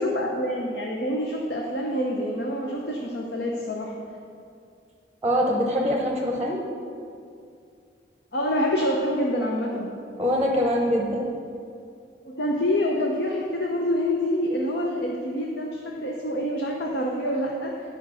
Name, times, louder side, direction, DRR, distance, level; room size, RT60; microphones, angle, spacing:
voice 1, 0.0-3.9 8.3-9.9 12.2-17.9, left 1 dB, 65° left, -1 dB, 0.9 m, -26 dB
voice 2, 5.2-6.6 10.2-11.3, equal, 10° right, -1 dB, 0.8 m, -23 dB
10.5 x 5.3 x 6.4 m, 2.4 s
head